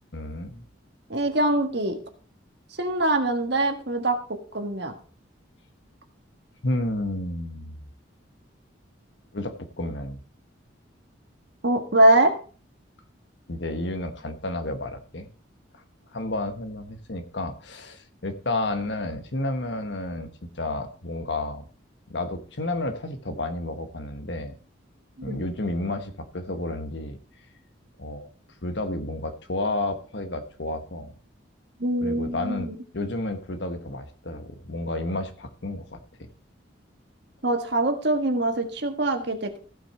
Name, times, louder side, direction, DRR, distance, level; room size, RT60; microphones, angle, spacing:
voice 1, 0.1-0.6 6.6-7.8 9.3-10.2 13.5-15.3 15.7-15.8 16.1-21.7 22.1-24.6 25.2-27.2 28.0-28.3 28.6-31.1 32.0-36.3, left 2 dB, 65° left, 8 dB, 1.3 m, -31 dB
voice 2, 1.1-2.0 2.8-4.9 11.6-12.3 25.3-25.4 31.8-32.8 37.4-39.7, right 1 dB, 60° right, 5 dB, 1.6 m, -23 dB
15.5 x 5.9 x 4.4 m, 0.40 s
head